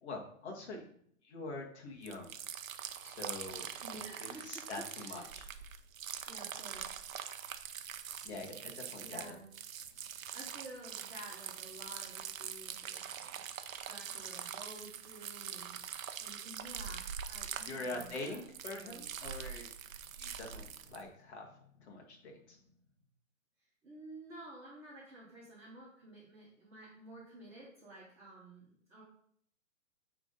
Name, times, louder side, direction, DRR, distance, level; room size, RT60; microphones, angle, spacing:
voice 1, 0.0-0.9 1.2-2.4 3.0-3.7 4.2-5.5 8.2-9.4 17.7-19.7 20.1-22.6, left 2 dB, 50° left, 1 dB, 2.0 m, -44 dB
sound 1, 2.0-21.0, right 8 dB, 75° right, 0.8 m, -44 dB
voice 2, 3.8-5.3 6.3-6.8 9.0-9.5 10.3-13.4 13.8-18.5 18.7-19.0 23.8-29.0, right 1 dB, 5° right, -15 dB, 0.5 m, -52 dB
9.5 x 3.7 x 4.0 m, 0.64 s
hypercardioid pair, 165°, 41 cm